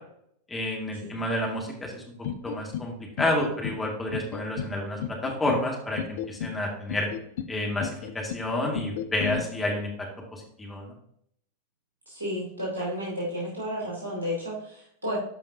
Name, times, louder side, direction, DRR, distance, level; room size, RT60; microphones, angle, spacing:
voice 1, 0.5-2.0 2.4-7.1 7.5-10.1 10.3-10.9, left 1 dB, 10° left, -1 dB, 2.2 m, -30 dB
sound 1, 2.2-2.9 3.2-3.8 4.1-4.7 5.0-5.6 6.0-6.6 6.9-7.5 7.8-8.4 8.7-9.4, left 9 dB, 55° left, 0.6 m, -33 dB
voice 2, 12.1-15.2, equal, 75° right, -5 dB, 2.9 m, -32 dB
12.5 x 5.1 x 2.8 m, 0.71 s
figure-of-eight pair, 90°, 0 cm